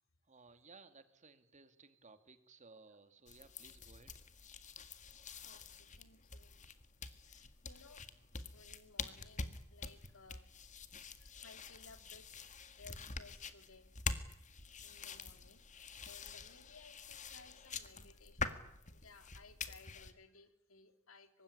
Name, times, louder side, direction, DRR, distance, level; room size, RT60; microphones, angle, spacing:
voice 1, 0.3-5.0, right 3 dB, 35° right, 9 dB, 2.4 m, -61 dB
sound 1, 3.3-20.1, left 4 dB, 35° left, 1.9 m, -46 dB
voice 2, 5.4-6.6 6.9-10.5 11.2-13.9 14.8-18.6 18.9-21.4, left 4 dB, 75° left, 9 dB, 3.0 m, -61 dB
24.5 x 20.0 x 9.9 m, 0.78 s
head